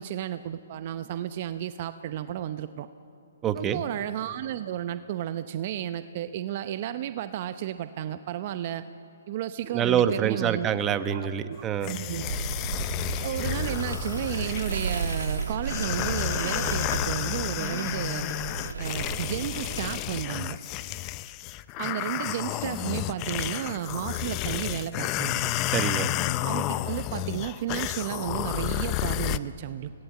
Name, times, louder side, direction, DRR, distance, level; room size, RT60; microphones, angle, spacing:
voice 1, 0.0-2.9 3.5-8.8 9.3-10.7 11.1-11.3 11.8-12.3 13.2-18.3 18.8-20.6 21.8-25.5 26.4-29.9, right 11 dB, 45° right, 11 dB, 0.7 m, -33 dB
voice 2, 3.4-3.8 9.7-12.0 25.7-26.2, right 9 dB, 20° right, 9 dB, 1.0 m, -26 dB
sound 1, 11.8-29.4, left 15 dB, 30° left, 0.5 m, -31 dB
sound 2, 12.3-20.0, right 4 dB, 90° right, 1.5 m, -33 dB
27.0 x 18.5 x 8.5 m, 2.6 s
hypercardioid pair, 140°, 0 cm